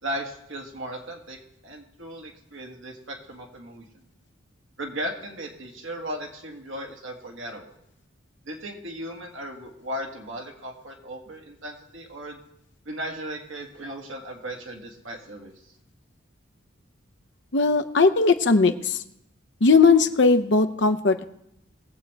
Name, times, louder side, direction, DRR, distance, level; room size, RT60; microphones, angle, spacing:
voice 1, 0.0-1.4 1.6-3.8 4.8-7.8 8.5-12.4 12.9-15.7, right 1 dB, 75° right, 1 dB, 2.0 m, -36 dB
voice 2, 17.5-19.0 19.6-21.2, left 4 dB, 60° left, 9 dB, 0.7 m, -18 dB
22.0 x 7.8 x 3.4 m, 0.80 s
head